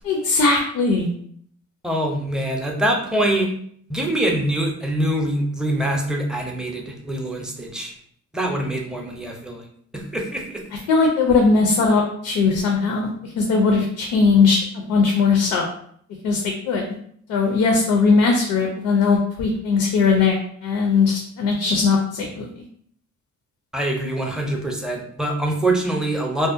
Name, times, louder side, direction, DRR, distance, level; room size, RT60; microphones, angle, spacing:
voice 1, 0.0-1.1 10.9-15.7 16.2-16.9 17.3-22.5, left 4 dB, 85° left, 1 dB, 0.5 m, -19 dB
voice 2, 1.8-3.5 3.9-7.9 8.3-9.6 9.9-10.6 23.7-26.5, right 1 dB, ahead, 0 dB, 0.5 m, -24 dB
2.6 x 2.1 x 2.5 m, 0.64 s
cardioid pair, 90°, 30 cm